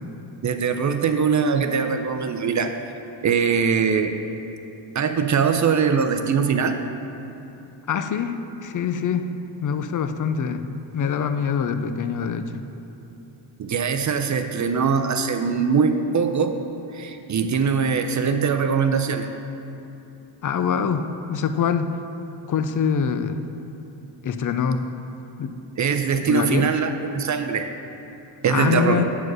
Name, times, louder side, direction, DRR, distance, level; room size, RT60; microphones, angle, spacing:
voice 1, 0.4-2.7 3.2-4.2 4.9-6.8 13.6-16.6 16.9-19.3 25.8-27.7 28.4-29.0, right 6 dB, 40° right, 7 dB, 0.6 m, -22 dB
voice 2, 7.9-9.4 9.6-10.6 10.9-12.6 20.4-22.0 22.5-23.4 24.2-24.8 25.4-25.6 26.3-26.7 28.5-29.0, left 7 dB, 40° left, 9 dB, 0.5 m, -24 dB
8.0 x 4.8 x 6.1 m, 2.9 s
cardioid pair, 90°, 48 cm